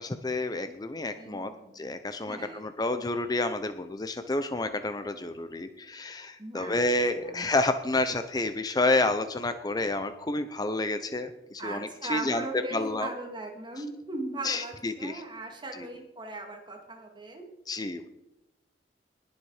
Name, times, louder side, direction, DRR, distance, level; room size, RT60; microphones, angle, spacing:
voice 1, 0.0-13.1 14.4-15.2 15.8-15.9 17.7-18.1, left 2 dB, 20° left, 9 dB, 0.6 m, -29 dB
voice 2, 1.1-1.8 2.2-2.7 6.4-6.9 7.2-7.4 11.6-17.5, right 2 dB, 25° right, 3 dB, 2.2 m, -39 dB
20.0 x 7.3 x 4.8 m, 0.90 s
head